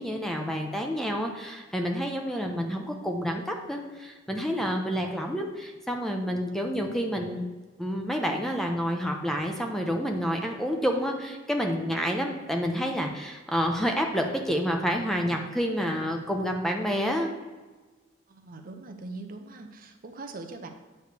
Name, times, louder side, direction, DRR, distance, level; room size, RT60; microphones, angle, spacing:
voice 1, 0.0-7.5 7.8-17.4, equal, ahead, 2 dB, 0.6 m, -29 dB
voice 2, 18.3-20.7, right 3 dB, 45° right, 4 dB, 0.7 m, -41 dB
8.4 x 3.2 x 6.5 m, 1.3 s
head